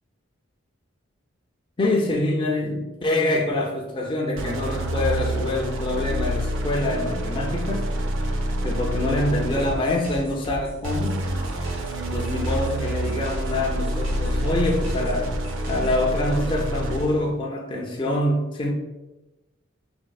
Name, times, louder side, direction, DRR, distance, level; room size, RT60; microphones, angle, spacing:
voice 1, 1.8-7.9 8.6-11.2 12.1-15.3 15.7-18.7, left 1 dB, 25° left, 0 dB, 0.4 m, -25 dB
sound 1, 4.4-10.0 10.8-17.2, right 1 dB, 70° right, 0.5 m, -27 dB
sound 2, 9.6-16.0, equal, 90° right, 1.3 m, -36 dB
4.3 x 3.4 x 2.3 m, 1.1 s
head